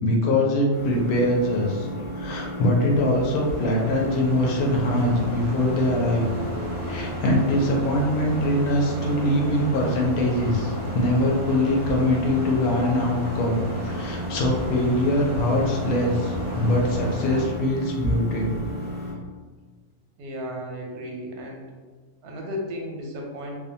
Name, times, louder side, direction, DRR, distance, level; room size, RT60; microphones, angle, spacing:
voice 1, 0.0-1.9 2.1-6.3 6.8-18.5, left 1 dB, 75° left, 0 dB, 1.0 m, -23 dB
sound 1, 0.7-19.1, equal, 15° left, 0.4 m, -34 dB
sound 2, 2.7-17.5, left 1 dB, 50° right, 0.6 m, -35 dB
voice 2, 20.2-21.7 22.2-23.5, equal, 90° right, -1 dB, 1.1 m, -34 dB
2.7 x 2.1 x 2.6 m, 1.4 s
omnidirectional pair, 1.6 m